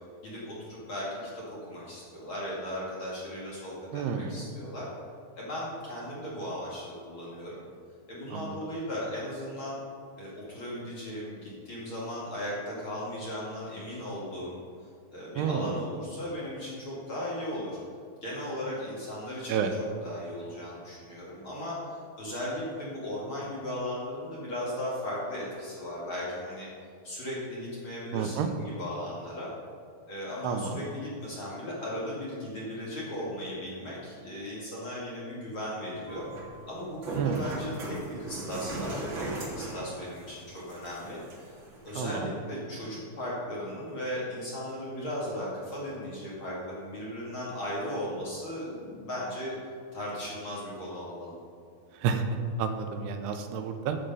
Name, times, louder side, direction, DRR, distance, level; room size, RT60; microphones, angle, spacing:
voice 1, 0.2-4.9 5.4-7.6 8.1-9.8 10.2-14.6 15.1-17.8 18.2-19.7 20.0-26.7 27.0-29.5 30.1-36.3 36.7-41.6 41.8-49.5 49.9-51.3, left 1 dB, 40° left, -7 dB, 2.4 m, -37 dB
voice 2, 3.9-4.4 8.3-8.5 15.4-15.8 19.5-19.7 28.1-28.5 30.4-30.8 37.2-37.5 42.0-42.3 51.9-52.3 52.6-54.0, right 7 dB, 85° right, 6 dB, 2.8 m, -30 dB
sound 1, 36.1-42.1, right 2 dB, 50° right, 1.6 m, -39 dB
12.5 x 6.8 x 5.5 m, 2.2 s
omnidirectional pair, 4.6 m